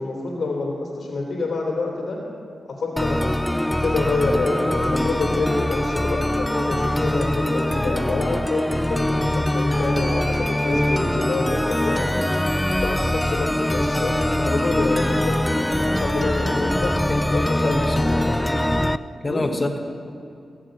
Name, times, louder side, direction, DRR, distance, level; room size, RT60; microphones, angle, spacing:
voice 1, 0.0-2.2 2.8-8.6 8.9-12.0 12.8-16.9 17.3-18.5 19.2-19.4, left 3 dB, 65° left, -1 dB, 3.0 m, -27 dB
sound 1, 3.0-19.0, left 1 dB, 10° left, 0.4 m, -23 dB
voice 2, 17.5-18.0 19.2-19.8, left 2 dB, 25° left, 5 dB, 1.1 m, -26 dB
19.5 x 7.3 x 7.7 m, 2.5 s
wide cardioid pair, 100°, 0 cm